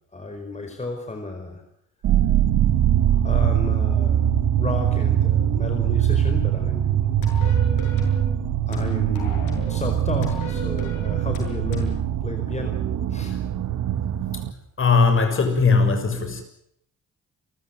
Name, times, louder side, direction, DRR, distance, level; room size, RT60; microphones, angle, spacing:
voice 1, 0.1-1.6 3.2-4.3 4.5-7.0 8.7-12.8 13.1-13.3, left 2 dB, 20° left, 5 dB, 4.9 m, -33 dB
sound 1, 2.0-14.5, right 10 dB, 75° right, 1.9 m, -22 dB
sound 2, 7.2-8.3 8.7-9.8 10.2-12.0, left 5 dB, 90° left, 7.9 m, -35 dB
voice 2, 14.8-16.4, left 4 dB, 45° left, 7 dB, 6.6 m, -19 dB
29.5 x 14.5 x 9.4 m, 0.74 s
cardioid pair, 90°, 30 cm